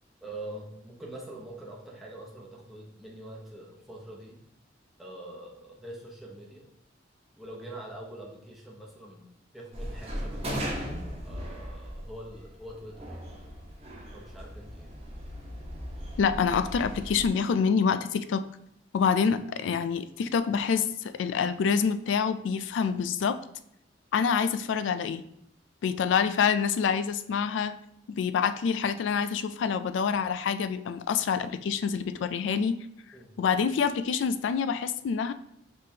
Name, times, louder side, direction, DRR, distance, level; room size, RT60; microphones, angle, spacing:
voice 1, 0.2-4.4 5.0-6.6 7.4-9.3 9.5-10.8 11.2-13.2 14.1-14.9 19.5-19.8 33.1-33.3, right 1 dB, ahead, -4 dB, 0.9 m, -44 dB
sound 1, 9.7-17.3, equal, 35° right, 1.1 m, -38 dB
voice 2, 16.2-18.4 18.9-23.4 24.1-25.2 25.8-27.8 28.1-32.9 33.4-35.3, left 6 dB, 75° left, 11 dB, 0.3 m, -26 dB
5.3 x 3.4 x 2.8 m, 0.73 s
head